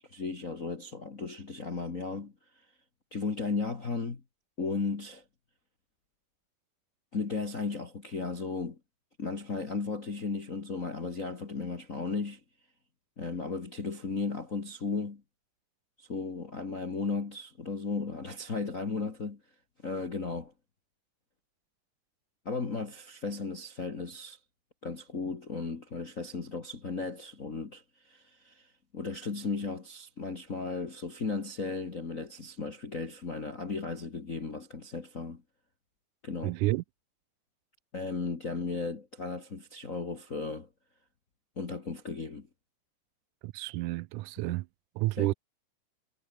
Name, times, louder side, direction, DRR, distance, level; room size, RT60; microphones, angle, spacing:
voice 1, 0.1-2.3 3.1-4.2 4.6-5.2 7.1-8.8 9.2-12.4 13.2-15.2 16.0-19.4 19.8-20.5 22.5-24.4 24.8-35.4 36.2-36.5 37.9-40.7 41.6-42.5 45.2-45.3, left 4 dB, 30° left, 1.8 m, -35 dB
voice 2, 36.4-36.8 43.4-44.7 45.0-45.3, right 20 dB, 80° right, 2.0 m, -30 dB
omnidirectional pair, 3.8 m